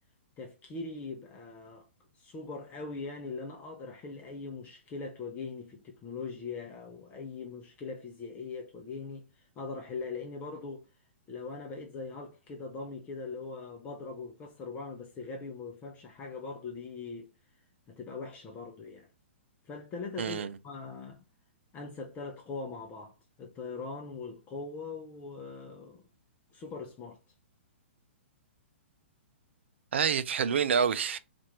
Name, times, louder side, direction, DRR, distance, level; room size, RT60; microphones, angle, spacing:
voice 1, 0.4-1.8 2.2-9.2 9.6-10.8 11.3-17.3 17.9-19.1 19.7-21.2 21.7-26.0 26.5-27.2, left 4 dB, 25° left, 0.7 m, -41 dB
voice 2, 20.2-20.5 29.9-31.2, right 7 dB, 70° right, 0.5 m, -27 dB
4.3 x 2.6 x 4.3 m
hypercardioid pair, 130°, 7 cm